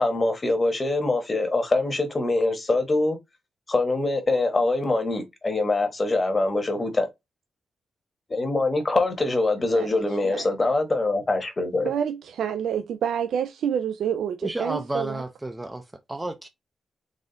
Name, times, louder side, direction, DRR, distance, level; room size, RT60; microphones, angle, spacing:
voice 1, 0.0-3.2 3.7-7.1 8.3-11.9, left 2 dB, 25° left, 1.1 m, -24 dB
voice 2, 9.7-10.5 11.8-15.2, right 8 dB, 85° right, 0.3 m, -28 dB
voice 3, 14.4-16.5, right 2 dB, 10° right, 0.4 m, -32 dB
4.1 x 2.4 x 3.8 m
wide cardioid pair, 135°, 0 cm